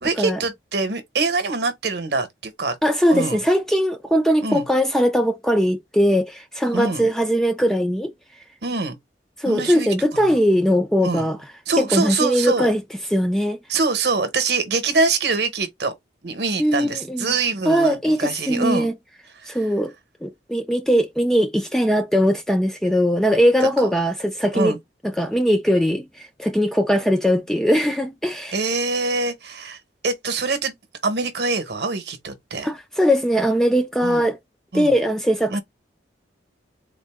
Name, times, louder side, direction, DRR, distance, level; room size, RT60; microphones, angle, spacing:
voice 1, 0.0-2.7 3.1-3.4 4.4-4.7 6.7-7.1 8.6-9.0 9.4-10.4 11.0-11.3 11.7-12.7 13.7-15.9 16.2-18.9 19.4-19.6 23.6-23.9 24.5-24.8 28.5-29.8 30.0-30.7 31.0-32.7 34.0-34.2 34.7-34.9 35.5-35.6, right 3 dB, 60° right, 0.9 m, -24 dB
voice 2, 2.8-8.1 9.4-11.4 11.8-12.8 13.1-13.6 16.6-17.3 17.7-18.9 19.5-19.9 20.2-24.7 25.2-28.6 32.6-34.4 34.7-35.6, equal, ahead, 0.3 m, -20 dB
3.8 x 2.5 x 3.5 m
head